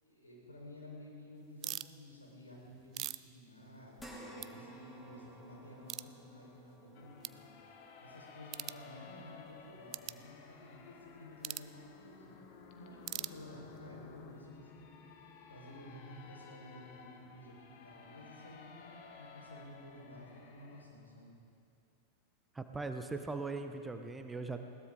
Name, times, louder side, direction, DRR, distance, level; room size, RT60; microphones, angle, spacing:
voice 1, 0.0-7.5 8.0-12.3 12.7-15.0 15.5-21.4, left 1 dB, 80° left, -2 dB, 4.6 m, -53 dB
sound 1, 1.6-1.9 2.6-4.1 4.4-4.5 5.0-5.1 5.9-6.1 6.7-6.8 7.2-7.4 8.5-8.8 9.9-10.2 11.4-11.7 13.0-13.8, right 16 dB, 35° right, 0.4 m, -42 dB
sound 2, 4.0-12.6 13.0-13.1 14.6-14.7, right 1 dB, 5° left, 2.7 m, -56 dB
sound 3, 6.9-20.8, left 5 dB, 45° left, 1.6 m, -55 dB
voice 2, 22.5-24.6, right 3 dB, 10° right, 7 dB, 0.9 m, -40 dB
20.5 x 18.0 x 3.8 m, 2.4 s
figure-of-eight pair, 90°, 0 cm